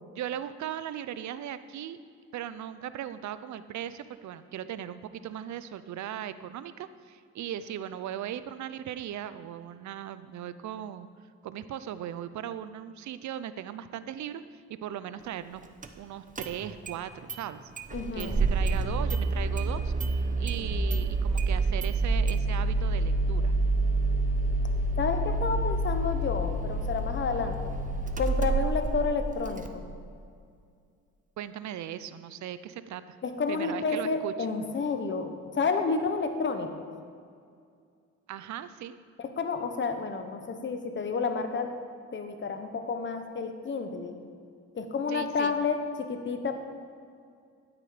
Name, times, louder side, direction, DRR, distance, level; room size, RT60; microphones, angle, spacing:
voice 1, 0.2-2.0 2.3-11.1 11.4-15.7 16.0-17.7 18.1-23.5 31.4-33.2 33.5-34.3 38.3-39.0 45.1-45.5, right 10 dB, 70° right, 13 dB, 0.7 m, -38 dB
Engine starting, 15.8-15.9 16.4-17.0 17.3-17.4 17.8-29.7, right 2 dB, 25° right, 0.9 m, -28 dB
voice 2, 17.9-18.4 25.0-27.8 28.2-29.8 33.2-36.9 39.2-41.7 42.1-44.2 44.7-46.6, left 4 dB, 40° left, 7 dB, 1.2 m, -30 dB
12.5 x 9.2 x 5.1 m, 2.3 s
cardioid pair, 90°, 30 cm